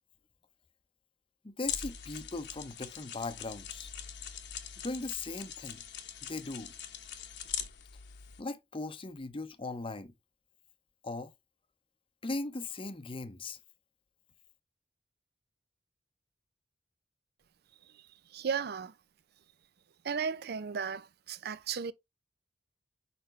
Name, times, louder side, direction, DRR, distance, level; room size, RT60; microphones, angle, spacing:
voice 1, 1.4-3.9 4.8-5.8 6.3-6.7 8.4-10.1 11.0-11.3 12.2-13.6, left 2 dB, 30° left, 0.7 m, -38 dB
sound 1, 1.6-8.4, left 9 dB, 70° left, 1.1 m, -42 dB
voice 2, 17.8-18.9 20.0-21.9, right 6 dB, 60° right, 0.5 m, -35 dB
6.8 x 5.0 x 3.2 m
head